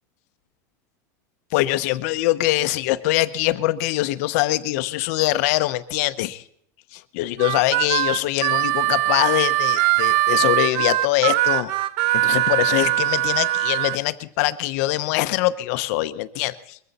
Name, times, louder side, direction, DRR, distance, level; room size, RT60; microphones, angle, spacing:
voice 1, 1.5-6.4 6.9-11.7 12.1-16.8, left 17 dB, 55° left, 13 dB, 0.8 m, -23 dB
Harmonica, 7.4-14.0, right 16 dB, 50° right, 0.6 m, -21 dB
22.0 x 15.0 x 4.2 m, 0.68 s
supercardioid pair, 165°, 10 cm